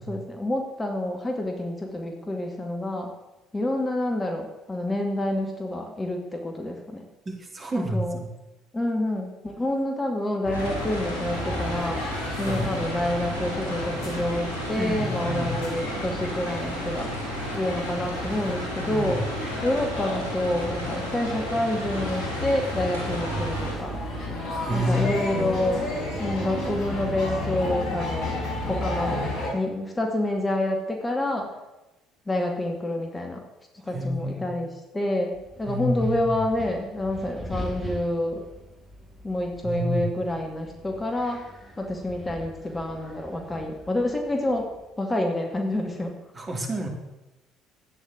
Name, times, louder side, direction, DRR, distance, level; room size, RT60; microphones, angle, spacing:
voice 1, 0.0-3.1 3.5-7.0 7.7-8.2 8.7-12.0 12.4-17.1 17.5-19.2 19.6-24.0 24.7-25.8 26.2-28.3 28.7-29.2 29.5-31.5 32.3-33.4 33.9-34.7 34.9-38.4 39.2-41.4 41.8-44.7 45.0-46.2, left 1 dB, 20° left, 2 dB, 2.3 m, -28 dB
voice 2, 7.3-8.3 12.4-12.6 14.8-15.6 18.9-19.2 24.6-25.1 33.8-34.5 35.6-36.4 39.6-40.1 46.3-46.9, equal, 25° right, 0 dB, 3.9 m, -29 dB
sound 1, 10.4-29.5, left 1 dB, 50° left, 5.1 m, -33 dB
sound 2, 10.5-23.7, equal, 75° left, 4.6 m, -34 dB
Wind, 35.3-44.9, equal, 5° right, 5.8 m, -42 dB
12.0 x 9.6 x 8.3 m, 1.0 s
figure-of-eight pair, 50°, 0 cm